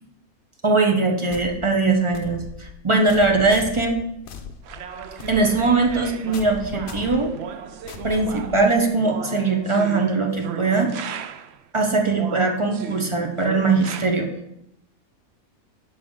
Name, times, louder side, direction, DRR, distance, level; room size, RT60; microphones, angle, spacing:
voice 1, 0.6-4.0 5.3-7.3 8.0-10.9 11.7-14.3, right 3 dB, 30° right, 2 dB, 0.6 m, -21 dB
sound 1, 1.3-8.9, left 6 dB, 50° left, 0.7 m, -39 dB
sound 2, 4.6-11.6 12.1-14.1, right 8 dB, 65° right, 0.6 m, -36 dB
11.0 x 4.4 x 3.7 m, 0.81 s
omnidirectional pair, 1.5 m